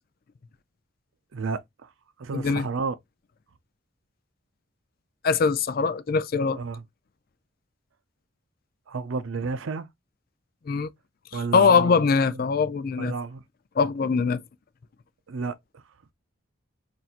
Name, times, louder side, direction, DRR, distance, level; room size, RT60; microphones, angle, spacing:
voice 1, 1.3-1.9 2.2-2.9 6.5-6.8 8.9-9.9 11.3-12.4 13.0-13.4 15.3-15.8, right 4 dB, 70° right, 0.5 m, -32 dB
voice 2, 2.3-2.6 5.2-6.6 10.7-10.9 11.5-13.1 13.8-14.4, left 5 dB, 45° left, 0.4 m, -22 dB
5.7 x 2.6 x 2.4 m
head